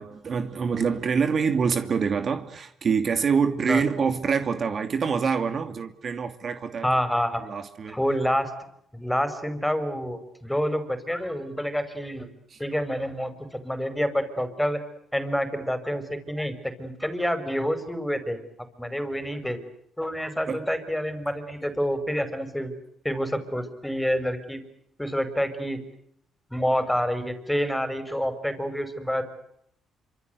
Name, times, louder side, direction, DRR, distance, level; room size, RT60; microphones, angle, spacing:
voice 1, 0.0-6.9 7.4-8.0 12.5-12.6 20.5-20.6, right 6 dB, 50° right, 8 dB, 2.6 m, -26 dB
voice 2, 6.8-7.4 7.9-8.5 8.9-12.3 12.6-14.8 15.1-18.4 18.8-19.6 20.0-22.7 23.0-24.6 25.0-25.8 26.5-29.2, equal, 5° left, 10 dB, 5.5 m, -28 dB
28.0 x 26.0 x 8.1 m, 0.74 s
cardioid pair, 90°, 0 cm